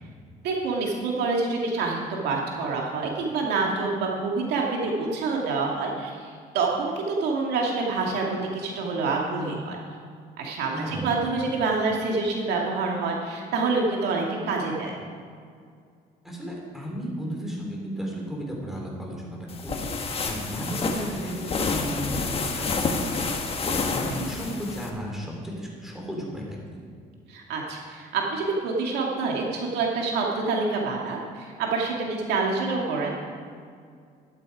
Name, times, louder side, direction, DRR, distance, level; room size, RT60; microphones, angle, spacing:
voice 1, 0.4-9.8 10.4-15.0 27.3-33.2, right 3 dB, 80° right, -1 dB, 2.2 m, -27 dB
voice 2, 10.7-11.3 16.2-23.1 23.4-26.6, equal, ahead, -2 dB, 3.9 m, -34 dB
sound 1, 19.5-24.9, left 4 dB, 35° left, 1.4 m, -29 dB
13.5 x 11.5 x 4.9 m, 2.2 s
cardioid pair, 110°, 17 cm